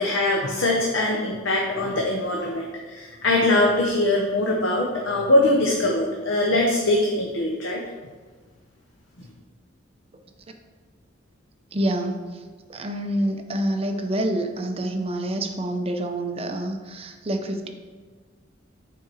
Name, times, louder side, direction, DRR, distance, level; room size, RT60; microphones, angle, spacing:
voice 1, 0.0-7.8, left 1 dB, 80° left, -1 dB, 0.9 m, -22 dB
voice 2, 11.7-12.4 12.7-17.7, right 1 dB, 30° right, 5 dB, 0.7 m, -27 dB
6.9 x 4.7 x 4.7 m, 1.4 s
head